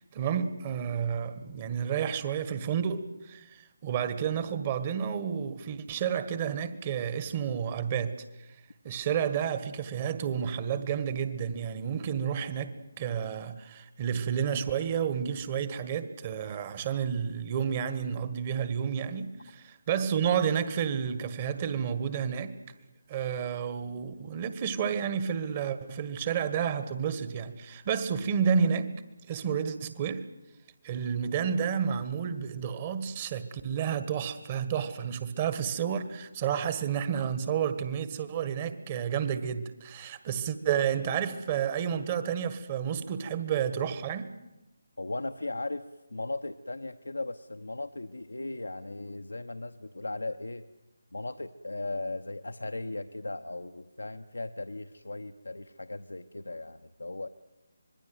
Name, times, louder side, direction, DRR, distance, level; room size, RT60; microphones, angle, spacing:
voice 1, 0.0-8.2 8.8-22.6 23.1-28.9 29.3-30.3 30.8-44.3, right 7 dB, 30° right, 1.6 m, -30 dB
voice 2, 45.0-50.6 51.1-57.3, left 2 dB, 80° left, 0.9 m, -37 dB
25.5 x 21.0 x 7.9 m
figure-of-eight pair, 150°, 0 cm